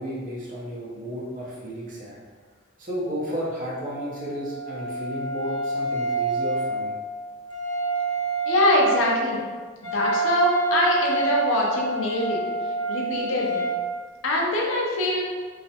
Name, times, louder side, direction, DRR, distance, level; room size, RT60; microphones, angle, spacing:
voice 1, 0.0-2.2 2.8-6.9, equal, 40° right, -6 dB, 0.6 m, -33 dB
Wind instrument woodwind instrument, 3.7-13.8, right 3 dB, 30° left, 0.9 m, -28 dB
voice 2, 8.5-9.4 9.8-12.4 12.9-13.7 14.2-15.2, left 1 dB, 80° left, -2 dB, 0.5 m, -23 dB
2.3 x 2.0 x 2.7 m, 1.5 s
head